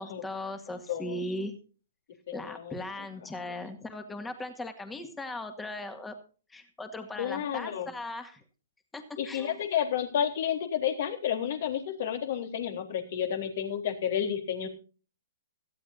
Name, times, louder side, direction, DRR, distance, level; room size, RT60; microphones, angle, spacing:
voice 1, 0.0-1.5 2.3-6.2 6.5-8.4 8.9-9.6, left 1 dB, 10° left, 8 dB, 2.2 m, -38 dB
voice 2, 0.9-1.2 2.3-3.1 7.2-7.9 9.2-14.7, left 9 dB, 50° left, 6 dB, 3.6 m, -31 dB
18.0 x 15.0 x 2.7 m, 0.38 s
figure-of-eight pair, 125°, 0 cm